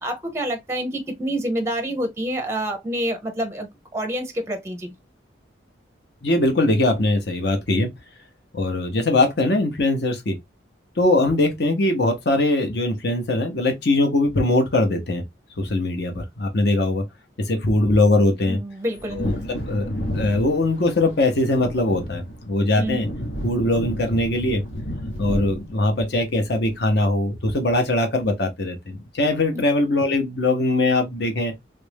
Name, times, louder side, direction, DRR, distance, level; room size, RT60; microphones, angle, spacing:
voice 1, 0.0-4.9 18.5-19.2 22.7-23.0 29.5-29.6, right 1 dB, 15° right, 0.6 m, -27 dB
voice 2, 6.2-7.9 8.5-10.4 11.0-15.2 15.6-17.0 17.4-18.6 19.1-23.1 23.4-24.6 25.2-31.5, left 2 dB, 55° left, 0.8 m, -21 dB
Wind / Thunder, 18.9-27.2 27.5-27.6, equal, 80° left, 1.2 m, -31 dB
3.2 x 2.5 x 3.3 m
head